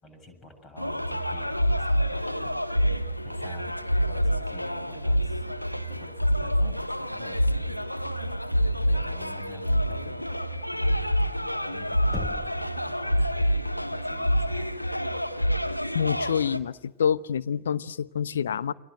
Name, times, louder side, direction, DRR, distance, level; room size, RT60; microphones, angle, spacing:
voice 1, 0.0-2.6 3.2-5.4 6.0-7.9 8.9-10.5 10.8-14.8, left 2 dB, 25° left, 7 dB, 7.6 m, -49 dB
sound 1, 0.8-16.6, equal, 90° left, 1.5 m, -27 dB
Knock, 12.1-12.8, left 1 dB, 10° left, 4.0 m, -34 dB
voice 2, 15.9-18.7, left 7 dB, 65° left, 14 dB, 1.0 m, -27 dB
29.5 x 24.0 x 7.8 m, 0.91 s
figure-of-eight pair, 90°, 0 cm